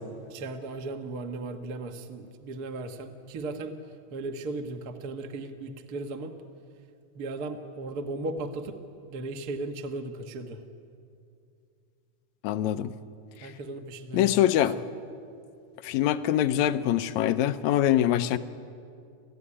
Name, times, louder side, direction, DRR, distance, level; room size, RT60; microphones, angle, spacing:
voice 1, 0.3-3.7 4.1-6.3 7.1-8.7 9.1-10.6 13.4-14.6, right 2 dB, 45° right, 6 dB, 1.3 m, -36 dB
voice 2, 12.4-12.9 13.4-13.5 14.1-14.8 15.8-18.4, left 12 dB, 75° left, 12 dB, 1.9 m, -24 dB
30.0 x 14.0 x 9.9 m, 2.4 s
omnidirectional pair, 3.7 m